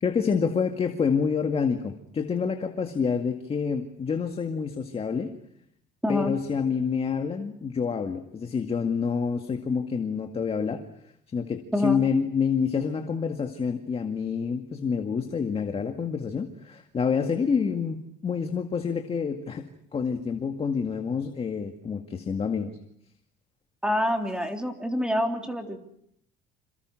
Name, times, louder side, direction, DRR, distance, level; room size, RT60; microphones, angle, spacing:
voice 1, 0.0-5.3 6.1-10.8 11.3-19.6 19.9-22.8, left 6 dB, 30° left, 6 dB, 2.0 m, -27 dB
voice 2, 6.0-6.3 11.7-12.0 23.8-25.8, left 1 dB, 5° right, 4 dB, 3.5 m, -26 dB
28.0 x 27.5 x 6.4 m, 0.73 s
cardioid pair, 125°, 20 cm